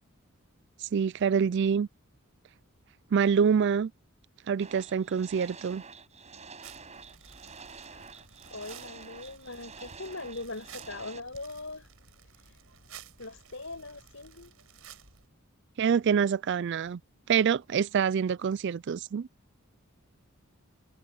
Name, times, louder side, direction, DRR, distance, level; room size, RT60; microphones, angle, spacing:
voice 1, 0.8-1.9 3.1-3.9 4.5-5.8 15.8-17.0 17.3-19.3, right 7 dB, 55° right, 0.4 m, -26 dB
sound 1, 4.6-11.2, right 5 dB, 30° right, 7.3 m, -48 dB
sound 2, 6.6-15.3, right 7 dB, 75° right, 5.5 m, -53 dB
voice 2, 8.5-11.9 12.4-12.6 13.2-14.5, left 2 dB, 65° left, 7.7 m, -41 dB
head